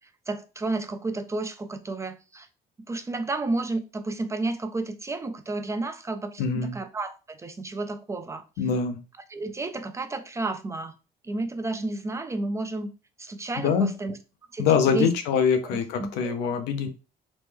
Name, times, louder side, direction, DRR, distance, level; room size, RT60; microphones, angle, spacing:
voice 1, 0.3-2.5 2.9-8.4 9.3-10.9 11.2-12.9 13.2-14.2 14.5-14.7 14.9-15.1 15.6-16.5, right 2 dB, 15° right, 0.4 m, -31 dB
voice 2, 6.4-6.7 8.6-9.0 13.6-13.9 14.6-16.9, left 6 dB, 90° left, 0.6 m, -24 dB
3.1 x 2.1 x 3.4 m
cardioid pair, 110°, 17 cm